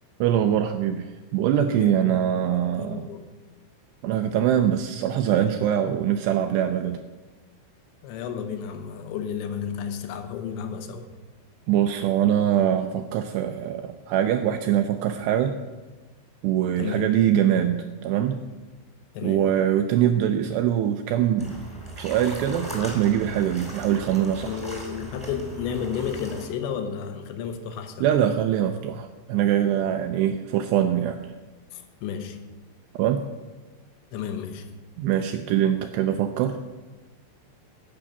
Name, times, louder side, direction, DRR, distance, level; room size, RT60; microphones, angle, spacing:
voice 1, 0.2-3.0 4.0-7.0 11.7-15.6 16.4-18.4 19.2-21.6 22.0-24.6 28.0-31.2 32.9-33.2 35.0-36.6, right 10 dB, 85° right, 7 dB, 2.5 m, -23 dB
voice 2, 1.8-3.3 8.0-11.1 16.8-17.1 19.1-19.4 24.4-28.1 31.7-32.5 34.1-34.7, left 7 dB, 80° left, 7 dB, 3.1 m, -32 dB
sound 1, 21.4-26.5, equal, 5° left, 0.8 m, -38 dB
12.5 x 5.7 x 8.0 m, 1.3 s
omnidirectional pair, 5.4 m